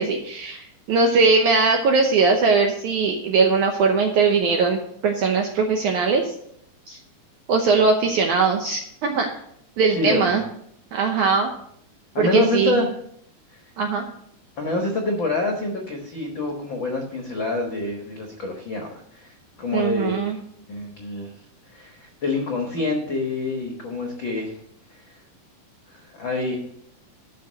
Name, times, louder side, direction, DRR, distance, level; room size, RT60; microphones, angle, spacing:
voice 1, 0.0-6.3 6.9-7.0 7.5-9.3 9.8-10.4 10.9-11.5 12.2-12.8 13.8-14.0 19.7-20.4, right 4 dB, 75° right, 3 dB, 1.8 m, -20 dB
voice 2, 9.9-10.4 12.1-12.9 13.5-13.6 14.6-19.3 19.6-20.4 20.7-21.3 21.7-24.5 26.1-26.6, left 2 dB, 70° left, 2 dB, 1.1 m, -26 dB
12.0 x 5.4 x 6.5 m, 0.70 s
omnidirectional pair, 4.5 m